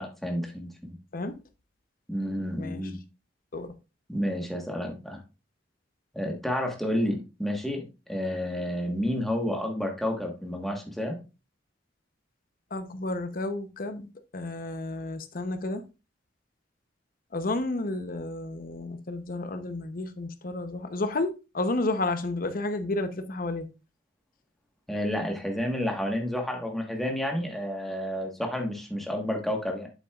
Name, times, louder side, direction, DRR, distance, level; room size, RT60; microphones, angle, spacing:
voice 1, 0.0-0.9 2.1-3.0 4.1-5.2 6.1-7.8 8.1-11.2 24.9-29.9, equal, ahead, 1.4 m, -30 dB
voice 2, 12.7-15.8 17.3-23.7, left 2 dB, 50° left, 0.8 m, -31 dB
8.2 x 7.5 x 2.4 m
head